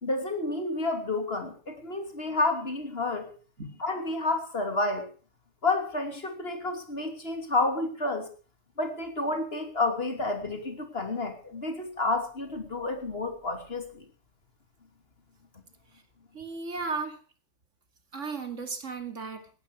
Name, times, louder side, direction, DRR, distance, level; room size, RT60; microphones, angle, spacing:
voice 1, 0.0-3.3 3.8-5.1 5.6-8.3 8.8-14.0, left 2 dB, 55° left, 6 dB, 3.1 m, -30 dB
voice 2, 16.3-17.2 18.1-19.5, right 4 dB, 85° right, 7 dB, 2.5 m, -35 dB
17.0 x 13.0 x 4.8 m, 0.36 s
omnidirectional pair, 1.2 m